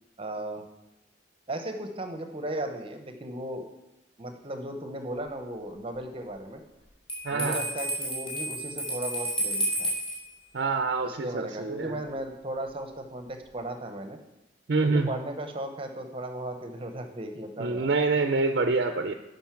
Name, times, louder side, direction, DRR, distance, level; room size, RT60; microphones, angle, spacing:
voice 1, 0.2-0.7 1.5-3.7 4.2-6.6 7.3-9.9 11.0-14.2 14.8-17.9, right 1 dB, 30° right, 6 dB, 0.8 m, -36 dB
Bell, 7.1-10.2, right 1 dB, 30° left, 2.6 m, -31 dB
voice 2, 7.2-7.6 10.5-12.0 14.7-15.1 17.6-19.1, right 3 dB, 55° right, 6 dB, 0.5 m, -26 dB
10.5 x 5.3 x 5.9 m, 0.97 s
head